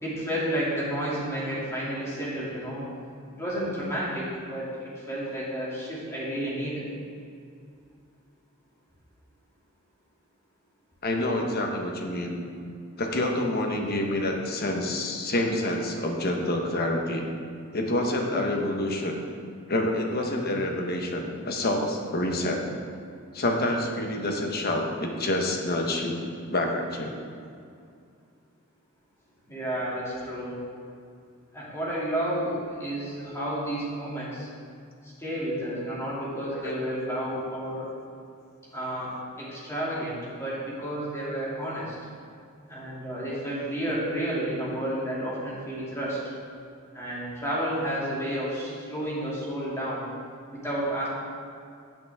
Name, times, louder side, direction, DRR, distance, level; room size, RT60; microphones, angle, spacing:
voice 1, 0.0-2.9 3.4-6.8 29.5-30.6 31.5-34.5 35.0-37.9 38.7-42.0 42.7-46.2 46.9-50.1 50.5-51.1, right 1 dB, 15° left, -7 dB, 2.7 m, -31 dB
voice 2, 11.0-12.4 13.0-17.2 17.7-19.2 19.7-22.6 23.3-26.2 26.5-27.1 36.6-36.7, left 1 dB, 45° left, 2 dB, 1.2 m, -27 dB
17.0 x 6.0 x 3.6 m, 2.3 s
head